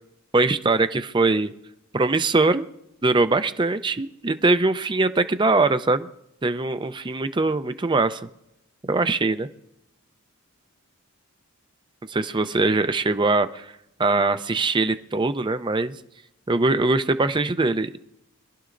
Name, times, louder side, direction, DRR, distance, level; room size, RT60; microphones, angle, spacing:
voice 1, 0.3-1.5 1.9-2.6 3.0-6.1 6.4-8.3 8.9-9.5 12.1-13.7 14.0-15.9 16.5-18.0, right 3 dB, 20° right, 10 dB, 0.5 m, -22 dB
25.5 x 12.0 x 2.6 m, 0.83 s
head